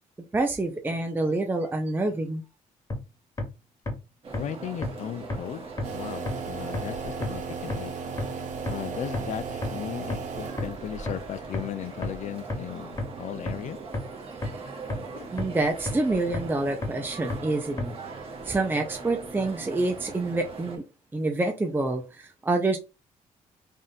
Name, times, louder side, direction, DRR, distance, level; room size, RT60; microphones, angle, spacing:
voice 1, 0.3-2.4 15.3-17.9 18.4-20.8 21.1-22.8, right 2 dB, 15° right, 0.6 m, -27 dB
sound 1, 2.9-3.0 3.4-3.5 3.9-4.0 4.3-4.4 4.8-4.9 5.3-5.4 5.8-5.9 6.3-6.4 6.7-6.8 7.2-7.3 7.7-7.8 8.2-8.3 8.7-8.8 9.1-9.2 9.6-9.7 10.1-10.2 10.6-10.7 11.1-11.2 11.5-11.6 12.0-12.1 12.5-12.6 13.0-13.1 13.5-13.6 13.9-14.0 14.4-14.5 14.9-15.0 15.4-15.5 15.9-16.0 16.3-16.4 16.8-16.9 17.3-17.4 17.8-17.9, left 3 dB, 25° left, 1.4 m, -29 dB
sound 2, 4.2-20.8, right 4 dB, 40° right, 1.4 m, -40 dB
voice 2, 4.4-5.7 5.9-7.9 8.7-13.8 15.1-15.3, left 10 dB, 55° left, 0.5 m, -36 dB
sound 3, 5.8-11.0, right 5 dB, 60° right, 0.9 m, -36 dB
3.7 x 2.5 x 4.1 m
cardioid pair, 115°, 14 cm